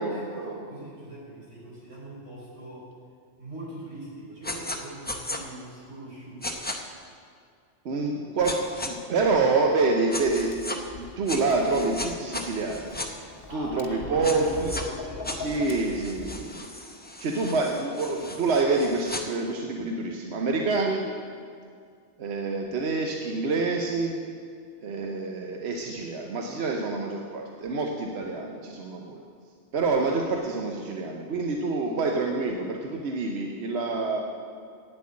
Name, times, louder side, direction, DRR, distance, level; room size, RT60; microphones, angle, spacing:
voice 1, 0.0-2.9 3.4-6.6 8.1-8.3 13.5-15.9, right 1 dB, 85° right, -6 dB, 4.1 m, -41 dB
sound 1, 4.4-4.8 5.1-5.4 6.4-6.8 8.4-8.9 10.1-10.8 11.3-13.1 14.2-14.8 15.2-19.2, left 1 dB, 10° left, 0.6 m, -36 dB
voice 2, 7.8-8.6 8.8-12.9 13.5-14.8 15.3-16.7 17.2-21.0 22.2-24.2 24.8-29.2 29.7-34.2, right 3 dB, 65° right, 1 dB, 1.0 m, -27 dB
Tap, 10.2-16.4, left 4 dB, 55° left, 1.0 m, -41 dB
9.2 x 7.6 x 8.5 m, 2.2 s
omnidirectional pair, 1.2 m